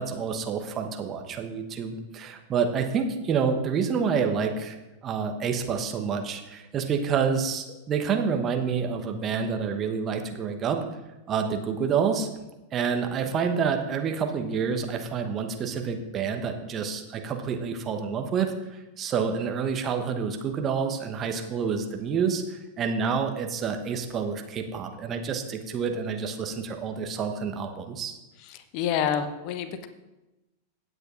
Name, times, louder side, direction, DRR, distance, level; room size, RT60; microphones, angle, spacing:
voice 1, 0.0-4.8 5.0-10.8 11.3-12.3 12.7-28.2, right 6 dB, 30° right, 5 dB, 1.0 m, -28 dB
voice 2, 28.5-29.9, left 8 dB, 45° left, 10 dB, 0.7 m, -28 dB
16.5 x 7.9 x 2.5 m, 1.0 s
figure-of-eight pair, 90°, 0 cm